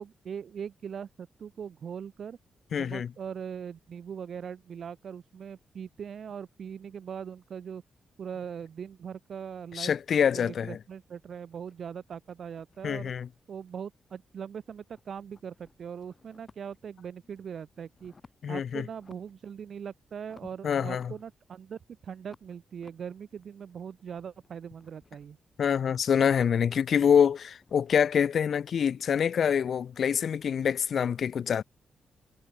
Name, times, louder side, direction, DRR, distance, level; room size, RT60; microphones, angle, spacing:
voice 1, 0.0-2.4 2.7-7.8 8.2-13.1 13.5-18.1 18.5-25.4, right 7 dB, 65° right, 1.5 m, -41 dB
voice 2, 2.7-3.1 9.7-10.8 12.8-13.3 18.4-18.8 20.6-21.1 25.6-31.6, left 7 dB, 65° left, 0.5 m, -26 dB
sound 1, 11.5-14.4 14.6-16.9 17.3-18.5 18.9-19.5 19.7-21.8 22.2-28.0, left 4 dB, 35° left, 6.5 m, -61 dB
cardioid pair, 85°, 0 cm